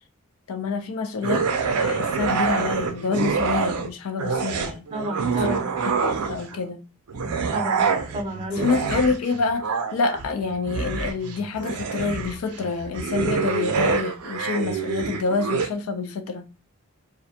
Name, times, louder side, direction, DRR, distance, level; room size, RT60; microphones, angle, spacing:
voice 1, 0.5-4.9 5.4-5.5 5.8-6.8 8.5-16.5, left 4 dB, 75° left, 0.4 m, -27 dB
sound 1, 1.2-3.9 4.2-6.6 7.1-15.7, right 5 dB, 85° right, 0.4 m, -26 dB
voice 2, 4.9-5.7 7.5-8.7, right 1 dB, 25° right, 0.5 m, -31 dB
2.4 x 2.1 x 2.7 m
head